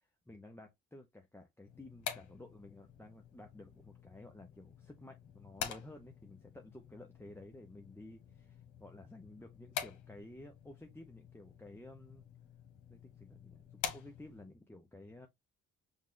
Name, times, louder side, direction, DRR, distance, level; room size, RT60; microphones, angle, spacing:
voice 1, 0.3-12.2 12.9-15.3, left 1 dB, 10° left, 0.7 m, -53 dB
sound 1, 1.7-14.6, left 8 dB, 75° left, 1.2 m, -47 dB
5.4 x 2.4 x 3.7 m
cardioid pair, 90°, 30 cm